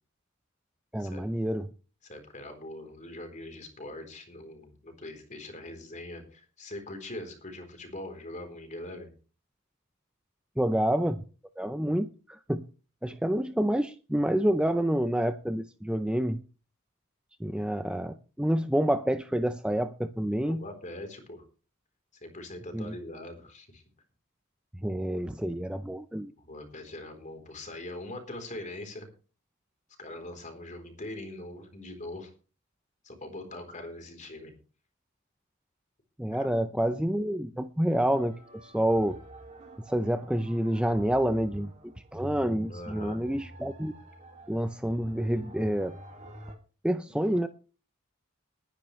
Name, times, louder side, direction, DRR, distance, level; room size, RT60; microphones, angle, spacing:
voice 1, 0.9-1.7 10.6-11.2 11.6-12.6 13.0-16.4 17.4-20.6 22.7-22.9 24.8-26.3 36.2-38.3 38.6-39.2 39.9-43.9 44.5-46.0 46.8-47.5, right 1 dB, 5° right, 0.6 m, -28 dB
voice 2, 2.0-9.1 20.5-21.4 22.1-23.8 26.4-29.1 30.0-32.3 33.0-34.5 36.3-36.5 42.7-43.2, left 1 dB, 35° left, 3.8 m, -42 dB
sound 1, 37.9-46.6, right 1 dB, 35° right, 2.7 m, -48 dB
20.0 x 10.0 x 3.2 m
head